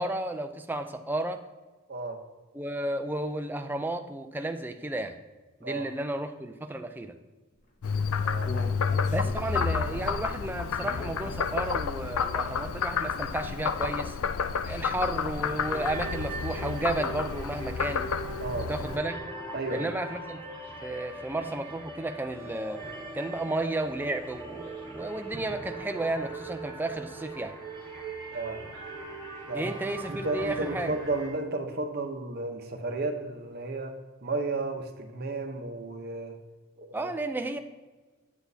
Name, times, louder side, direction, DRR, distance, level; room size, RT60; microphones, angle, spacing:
voice 1, 0.0-1.4 2.5-5.2 5.6-7.1 9.1-14.2 14.7-18.1 18.7-19.2 19.7-20.4 20.8-22.8 23.1-27.5 29.5-30.9 36.9-37.6, right 2 dB, 10° right, 7 dB, 0.4 m, -33 dB
Frog, 7.8-19.0, left 6 dB, 75° left, 0.4 m, -30 dB
Human voice, 7.8-12.0 12.4-12.5 12.9-13.0, left 2 dB, 35° left, 0.8 m, -42 dB
sound 1, 15.6-31.3, right 2 dB, 10° left, 2.5 m, -40 dB
voice 2, 19.5-20.0 28.3-28.6 29.5-29.7 30.1-34.0 34.2-36.4 36.8-37.1, right 2 dB, 45° right, 4 dB, 0.8 m, -33 dB
8.1 x 8.0 x 2.7 m, 1.3 s
head